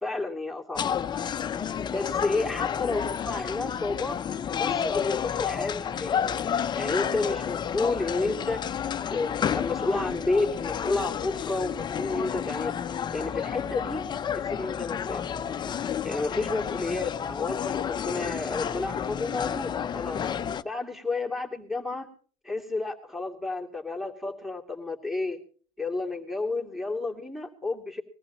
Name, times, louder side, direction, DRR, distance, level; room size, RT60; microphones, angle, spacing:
voice 1, 0.0-1.0 1.9-4.2 4.6-6.1 6.7-8.6 9.1-12.7 13.1-14.1 14.3-15.2 16.0-20.2 20.6-22.1 22.4-25.4 25.8-28.0, left 3 dB, ahead, 4 dB, 2.7 m, -31 dB
sound 1, 0.8-20.6, left 8 dB, 25° left, 0.8 m, -31 dB
21.5 x 14.5 x 4.1 m, 0.43 s
supercardioid pair, 125°, 18 cm